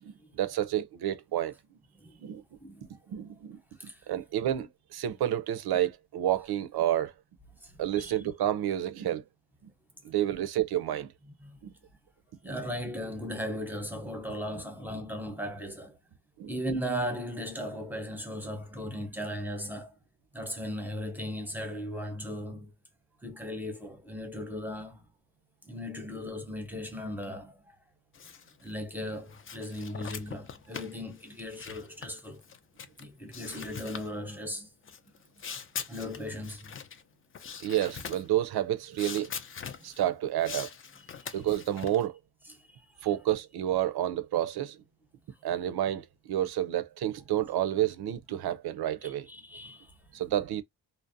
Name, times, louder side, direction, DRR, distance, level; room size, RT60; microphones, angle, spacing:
voice 1, 0.0-1.6 2.2-2.4 3.1-3.6 4.1-7.1 7.8-9.2 10.0-11.1 11.6-11.7 12.4-12.6 14.9-15.0 16.4-16.5 37.6-39.3 39.8-40.7 41.3-42.2 43.0-44.8 45.4-49.3 50.1-50.6, right 12 dB, 80° right, 0.5 m, -30 dB
voice 2, 1.9-3.0 3.8-4.1 7.6-8.1 11.4-11.6 12.4-16.0 16.5-19.9 20.3-22.7 23.2-25.0 25.6-27.8 28.6-32.4 33.0-34.7 35.4-35.5 35.9-36.7 41.2-41.3 42.5-43.1 49.0-49.9, equal, 5° right, 0.7 m, -37 dB
sound 1, 28.1-28.7 29.1-33.1 33.3-34.1 34.9-37.0 37.3-38.3 38.9-40.1 40.4-42.1, left 7 dB, 35° left, 0.4 m, -42 dB
2.5 x 2.0 x 2.5 m
wide cardioid pair, 115°, 38 cm